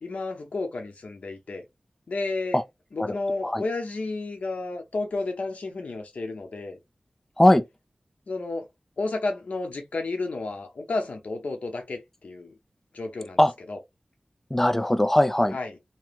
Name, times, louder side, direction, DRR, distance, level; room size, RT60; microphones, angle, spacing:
voice 1, 0.0-1.6 2.1-2.6 2.9-6.8 8.3-8.7 9.0-12.5 12.9-13.4 13.7-13.8 15.5-15.7, left 3 dB, 90° left, 0.8 m, -31 dB
voice 2, 3.0-3.6 7.4-7.6 13.4-13.5 14.5-15.6, left 1 dB, 10° left, 0.4 m, -20 dB
2.9 x 2.1 x 3.4 m
wide cardioid pair, 50°, 2 cm